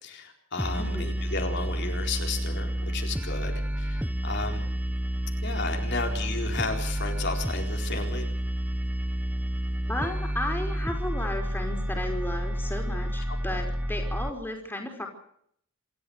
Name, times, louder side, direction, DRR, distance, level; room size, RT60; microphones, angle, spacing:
voice 1, 0.0-4.6 5.4-8.3 13.3-13.6, left 3 dB, 60° left, 3 dB, 4.3 m, -34 dB
sound 1, 0.6-14.3, right 1 dB, 10° right, 1.1 m, -30 dB
voice 2, 0.8-1.2 9.9-15.1, left 1 dB, 10° left, 3 dB, 4.9 m, -34 dB
27.5 x 13.5 x 8.0 m, 0.66 s
head